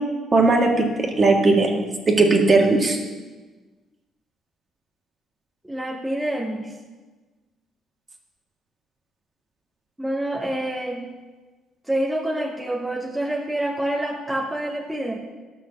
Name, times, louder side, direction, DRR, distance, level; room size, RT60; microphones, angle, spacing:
voice 1, 0.3-3.0, right 3 dB, 30° right, 1 dB, 1.8 m, -18 dB
voice 2, 5.6-6.7 10.0-11.1 11.9-15.2, right 1 dB, 5° right, -3 dB, 1.4 m, -27 dB
12.5 x 6.1 x 7.0 m, 1.3 s
cardioid pair, 110°, 0 cm